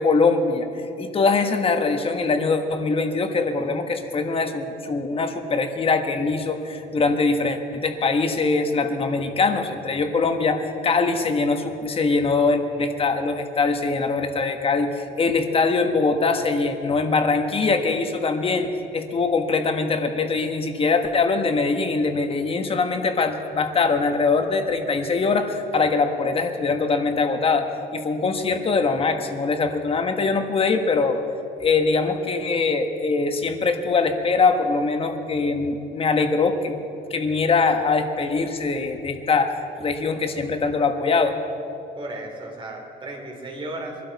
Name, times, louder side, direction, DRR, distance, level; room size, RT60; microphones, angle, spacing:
voice 1, 0.0-31.2 31.6-36.8 37.1-41.4, left 4 dB, 35° left, 6 dB, 1.3 m, -22 dB
voice 2, 41.9-44.0, right 1 dB, 30° right, 1 dB, 3.2 m, -35 dB
22.0 x 12.5 x 4.1 m, 3.0 s
cardioid pair, 110°, 17 cm